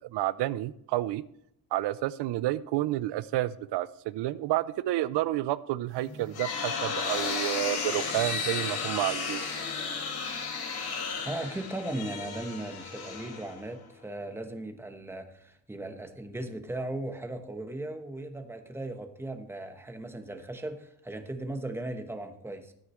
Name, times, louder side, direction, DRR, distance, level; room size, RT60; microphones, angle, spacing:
voice 1, 0.1-1.2 1.7-9.4, right 15 dB, 80° right, 15 dB, 0.6 m, -30 dB
sound 1, 6.0-13.9, left 5 dB, 65° left, 2.3 m, -34 dB
voice 2, 11.2-22.7, right 1 dB, 5° right, 6 dB, 1.0 m, -37 dB
13.0 x 9.3 x 3.1 m, 0.74 s
cardioid pair, 145°, 41 cm